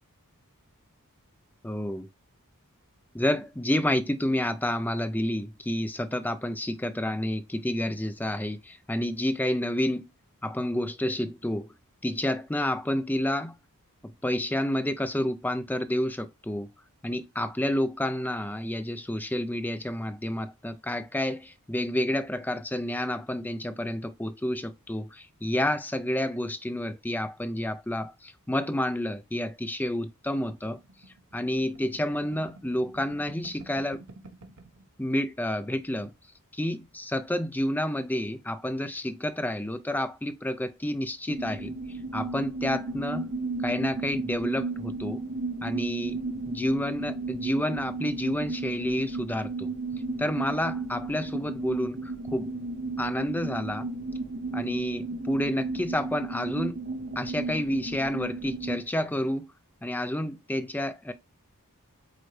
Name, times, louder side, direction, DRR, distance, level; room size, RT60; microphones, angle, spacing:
voice 1, 1.6-2.1 3.1-10.1 10.4-11.7 12.0-13.5 14.2-16.7 17.0-30.8 31.3-34.0 35.0-36.1 36.5-41.7 42.1-43.3 43.6-45.2 45.6-49.7 50.2-52.5 53.0-53.9 54.5-56.8 57.2-59.5 59.8-61.1, left 1 dB, 10° left, 0.5 m, -29 dB
sound 1, 30.5-34.8 35.2-35.3 35.5-36.1, right 2 dB, 65° right, 1.2 m, -50 dB
sound 2, 41.3-58.8, right 3 dB, 50° right, 0.6 m, -34 dB
7.8 x 4.1 x 3.2 m
head